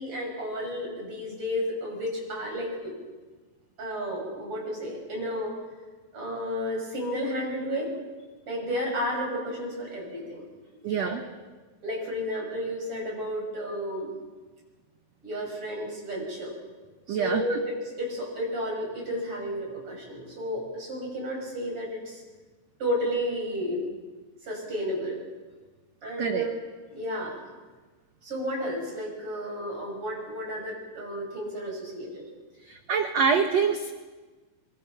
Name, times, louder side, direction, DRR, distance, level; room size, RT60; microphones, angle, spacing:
voice 1, 0.0-2.9 3.8-5.6 6.1-7.9 8.5-10.5 10.8-11.2 11.8-14.1 15.2-16.5 17.1-22.2 22.8-23.9 24.4-25.2 26.0-26.5 26.9-27.4 28.2-32.2, equal, 30° right, -1 dB, 7.1 m, -32 dB
voice 2, 10.8-11.2 17.1-17.6 26.2-26.6 32.7-33.9, right 6 dB, 85° right, 6 dB, 1.4 m, -25 dB
25.0 x 24.0 x 5.8 m, 1.3 s
omnidirectional pair, 4.8 m